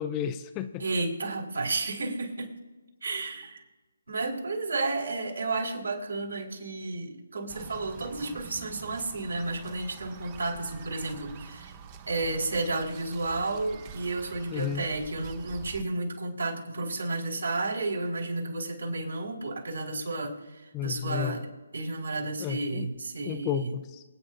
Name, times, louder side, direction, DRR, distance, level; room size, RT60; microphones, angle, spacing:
voice 1, 0.0-0.8 14.5-14.8 20.7-21.4 22.4-22.9 23.3-24.0, left 9 dB, 20° left, 10 dB, 0.5 m, -32 dB
voice 2, 0.8-2.5 3.0-3.6 4.1-11.7 12.1-21.5 21.7-23.7, right 2 dB, 75° right, 0 dB, 4.6 m, -32 dB
sound 1, 7.5-15.8, right 7 dB, 25° right, 0.8 m, -46 dB
28.0 x 9.6 x 2.5 m, 1.2 s
figure-of-eight pair, 150°, 0 cm